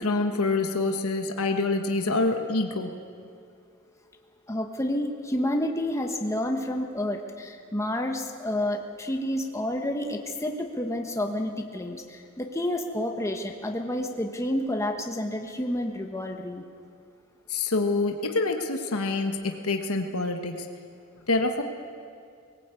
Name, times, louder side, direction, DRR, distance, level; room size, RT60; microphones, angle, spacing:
voice 1, 0.0-2.9 17.5-20.7 21.3-21.6, left 3 dB, 85° left, 4 dB, 1.4 m, -26 dB
voice 2, 4.5-16.6, left 1 dB, 15° left, 3 dB, 1.2 m, -29 dB
20.5 x 18.5 x 8.3 m, 2.3 s
head